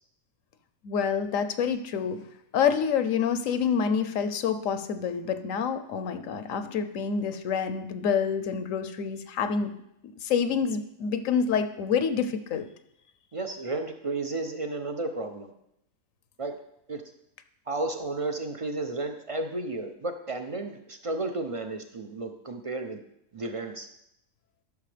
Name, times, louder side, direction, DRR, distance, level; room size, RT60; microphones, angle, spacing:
voice 1, 0.8-2.2 2.5-9.7 10.2-12.7, left 6 dB, 80° left, 9 dB, 1.0 m, -27 dB
voice 2, 13.3-15.5 16.4-16.6 16.9-17.0 17.7-23.0 23.3-23.9, right 2 dB, 50° right, 5 dB, 0.4 m, -33 dB
13.0 x 6.0 x 3.3 m, 0.78 s
omnidirectional pair, 1.4 m